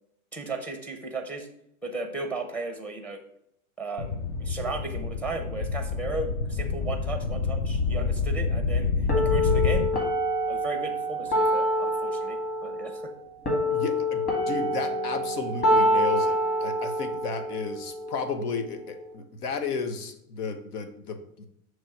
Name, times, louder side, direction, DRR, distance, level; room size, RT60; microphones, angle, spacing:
voice 1, 0.3-1.5 1.8-3.2 3.8-9.9 10.5-13.1, right 3 dB, 5° left, 4 dB, 0.6 m, -35 dB
sound 1, 4.0-9.9, left 4 dB, 55° left, 0.9 m, -27 dB
sound 2, 9.1-19.1, equal, 20° left, 2.0 m, -27 dB
voice 2, 13.7-21.4, left 4 dB, 80° left, 8 dB, 1.1 m, -33 dB
6.2 x 3.2 x 5.6 m, 0.75 s
supercardioid pair, 135°, 45 cm